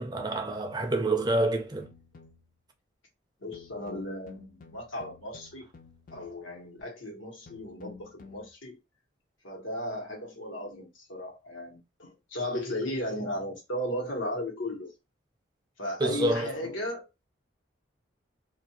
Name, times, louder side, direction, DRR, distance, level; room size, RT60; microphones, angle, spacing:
voice 1, 0.0-1.9 16.0-16.5, right 2 dB, 20° right, 0.4 m, -27 dB
sound 1, 1.8-2.6 3.5-6.5 7.5-8.5, left 5 dB, 45° left, 0.4 m, -52 dB
voice 2, 3.4-5.7 6.1-8.8 9.4-14.9 15.8-17.1, left 1 dB, 90° left, 1.2 m, -35 dB
2.5 x 2.3 x 2.7 m
head